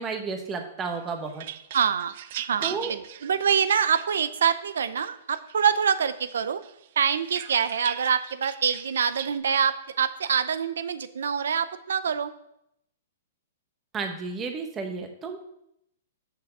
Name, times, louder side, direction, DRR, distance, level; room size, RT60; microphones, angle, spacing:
voice 1, 0.0-1.5 2.6-2.9 13.9-15.4, right 4 dB, 15° right, 4 dB, 0.9 m, -32 dB
sound 1, 0.9-4.5 5.0-5.9 6.3-9.4, right 12 dB, 45° right, 0.4 m, -39 dB
voice 2, 1.7-6.6 7.0-12.3, right 7 dB, 85° right, 12 dB, 0.6 m, -25 dB
6.8 x 6.1 x 6.7 m, 0.77 s
hypercardioid pair, 170°, 0 cm